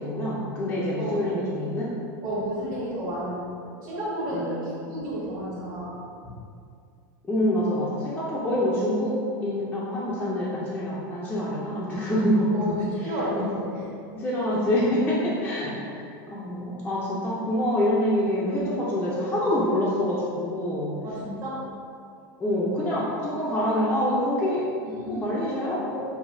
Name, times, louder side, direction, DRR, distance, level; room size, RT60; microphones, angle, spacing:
voice 1, 0.0-1.9 4.3-4.8 7.3-9.2 9.4-12.8 13.3-13.5 14.1-20.9 22.4-24.7 25.1-26.0, left 1 dB, 10° left, -8 dB, 0.6 m, -26 dB
voice 2, 2.2-6.3 12.5-13.9 21.0-21.6 24.9-25.4, right 1 dB, 35° right, -12 dB, 1.3 m, -32 dB
5.9 x 2.7 x 2.6 m, 2.4 s
supercardioid pair, 145°, 11 cm